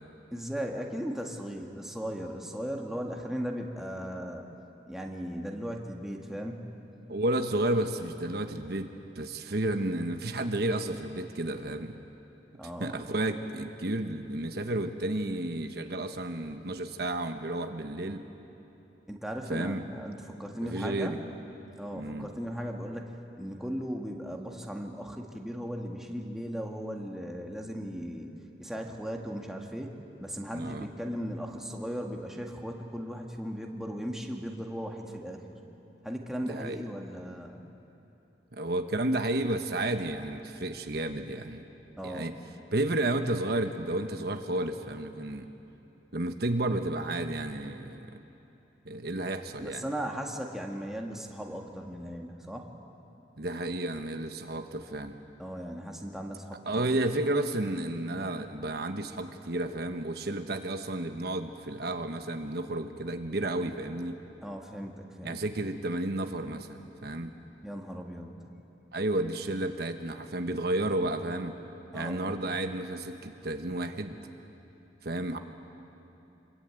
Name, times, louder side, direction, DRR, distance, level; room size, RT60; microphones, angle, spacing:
voice 1, 0.3-4.5 4.9-6.7 12.6-12.9 19.1-21.2 21.8-28.3 28.6-35.6 36.0-37.6 42.0-42.4 49.6-52.7 55.4-56.9 64.4-65.4 67.6-68.3 71.9-72.5, equal, ahead, 0 dB, 1.9 m, -37 dB
voice 2, 7.1-8.9 9.1-11.9 12.8-18.2 19.5-19.8 20.6-21.2 21.9-22.3 30.5-30.9 36.5-36.8 38.5-41.7 42.0-42.3 42.7-45.5 46.1-48.1 48.8-49.9 53.4-55.2 56.7-64.2 65.2-67.3 68.9-71.5 71.9-74.2 75.0-75.4, right 1 dB, 60° right, 6 dB, 1.1 m, -32 dB
26.5 x 22.0 x 9.1 m, 2.9 s
head